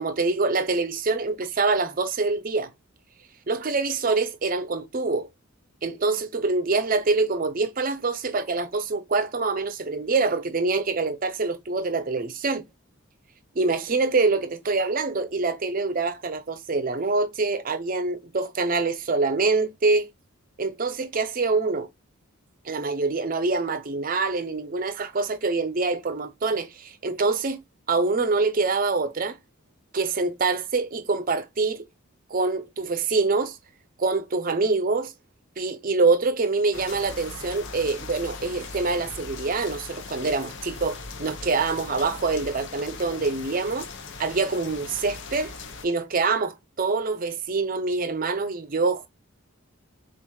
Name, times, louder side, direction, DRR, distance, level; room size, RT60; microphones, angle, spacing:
voice 1, 0.0-2.7 3.5-5.3 5.8-12.6 13.6-20.1 20.6-21.9 22.7-29.4 29.9-31.8 32.3-33.6 34.0-35.1 35.6-43.9 44.2-45.5 45.8-49.1, right 3 dB, 40° right, 0.6 m, -25 dB
sound 1, 36.7-45.9, left 4 dB, 55° left, 0.7 m, -39 dB
7.0 x 2.5 x 3.1 m
head